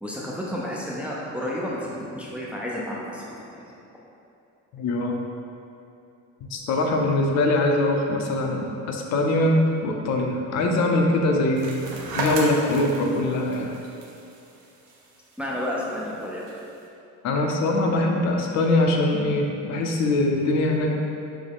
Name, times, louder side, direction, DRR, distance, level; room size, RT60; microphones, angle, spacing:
voice 1, 0.0-3.2 3.5-3.7 15.4-16.5, left 1 dB, 5° right, -5 dB, 0.3 m, -31 dB
voice 2, 4.7-5.1 6.4-11.8 12.1-13.7 17.2-20.9, left 2 dB, 60° left, 2 dB, 0.6 m, -22 dB
sound 1, 11.6-16.8, right 2 dB, 85° right, 0.8 m, -35 dB
6.1 x 2.1 x 3.5 m, 2.7 s
cardioid pair, 155°, 31 cm